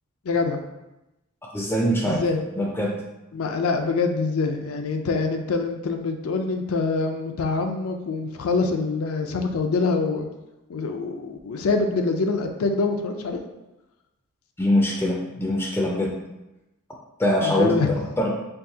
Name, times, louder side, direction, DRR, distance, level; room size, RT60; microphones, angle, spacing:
voice 1, 0.2-0.6 2.0-2.4 3.3-10.3 10.7-13.4 17.4-17.9, left 4 dB, 75° left, 5 dB, 0.4 m, -25 dB
voice 2, 1.5-2.2 2.6-2.9 14.6-16.1 17.2-18.4, left 1 dB, 10° left, -1 dB, 0.4 m, -23 dB
4.5 x 3.2 x 2.7 m, 0.96 s
head